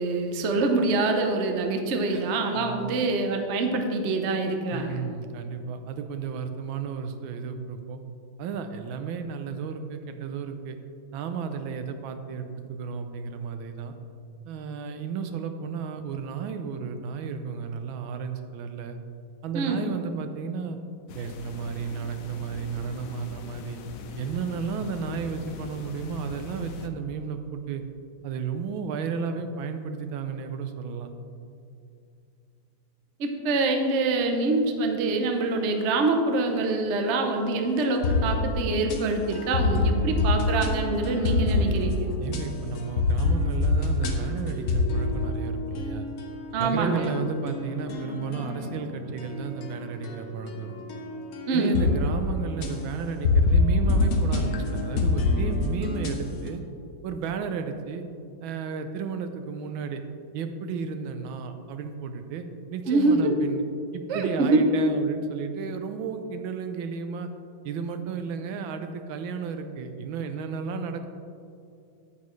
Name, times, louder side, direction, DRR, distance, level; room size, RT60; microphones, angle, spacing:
voice 1, 0.0-5.0 19.5-19.8 33.2-42.1 46.5-47.1 51.5-51.8 62.9-63.3 64.1-64.5, right 3 dB, 60° right, 4 dB, 0.7 m, -25 dB
voice 2, 2.5-2.9 4.7-8.0 8.4-10.8 11.1-13.9 14.5-19.0 19.4-20.8 21.1-23.8 24.2-27.8 28.2-31.1 42.2-46.1 46.6-50.8 51.5-56.6 57.0-58.0 58.4-60.0 60.3-63.6 63.9-67.3 67.6-71.1, right 6 dB, 80° right, 7 dB, 1.4 m, -33 dB
sound 1, 21.1-26.9, left 4 dB, 85° left, 0.7 m, -41 dB
sound 2, 37.8-56.5, left 3 dB, 55° left, 1.2 m, -26 dB
9.4 x 8.5 x 3.1 m, 2.5 s
omnidirectional pair, 2.2 m